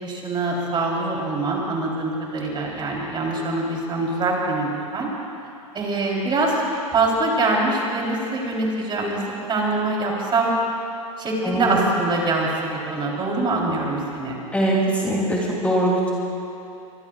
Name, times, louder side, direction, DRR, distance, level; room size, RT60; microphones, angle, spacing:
voice 1, 0.0-5.1 5.7-6.6 6.9-9.2 9.5-10.5 11.2-14.4, right 2 dB, 25° right, -2 dB, 3.9 m, -24 dB
voice 2, 11.4-11.8 14.5-16.1, right 1 dB, 5° left, -4 dB, 3.1 m, -22 dB
25.0 x 20.0 x 2.5 m, 2.8 s
hypercardioid pair, 105°, 18 cm